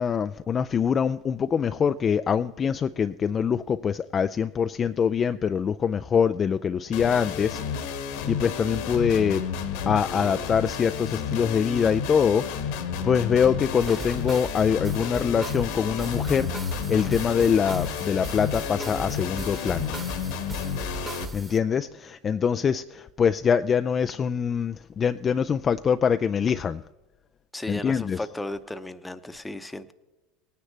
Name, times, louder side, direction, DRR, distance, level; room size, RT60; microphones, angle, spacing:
voice 1, 0.0-7.6 8.3-9.4 9.9-12.5 13.0-16.5 16.9-20.0 21.3-26.8 27.7-28.2, left 7 dB, 35° left, 0.4 m, -24 dB
sound 1, 6.9-21.3, left 6 dB, 70° left, 1.5 m, -31 dB
sound 2, 13.8-21.6, right 1 dB, 20° right, 1.4 m, -38 dB
voice 2, 27.5-29.9, left 1 dB, 10° left, 0.8 m, -35 dB
18.5 x 9.7 x 3.3 m
hypercardioid pair, 85°, 0 cm